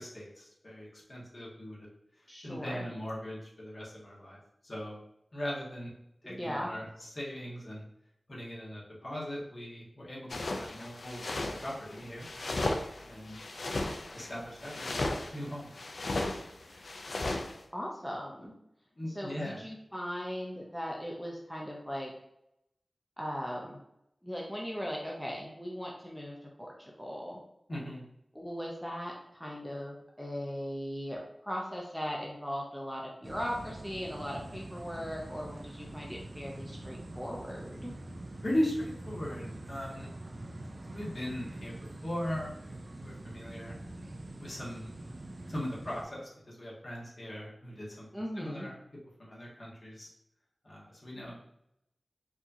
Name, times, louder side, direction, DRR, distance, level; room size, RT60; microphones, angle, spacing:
voice 1, 0.0-1.9 2.2-5.0 5.3-5.9 6.2-7.8 8.3-12.3 13.0-13.4 14.1-15.7 18.9-19.6 27.7-28.0 38.4-40.1 40.9-41.8 42.0-43.7 44.4-44.9 45.5-48.1 48.3-48.7 49.2-50.1 50.6-51.6, equal, 45° left, -5 dB, 1.4 m, -39 dB
voice 2, 2.3-2.9 6.2-6.9 17.7-18.5 19.1-22.1 23.2-23.8 24.2-27.4 28.3-38.0 48.1-48.7, equal, 5° left, -2 dB, 0.7 m, -38 dB
sound 1, 10.3-17.5, left 2 dB, 70° left, 0.5 m, -36 dB
sound 2, 33.2-46.0, right 1 dB, 50° right, 0.4 m, -45 dB
4.6 x 2.8 x 2.7 m, 0.80 s
wide cardioid pair, 70°, 0 cm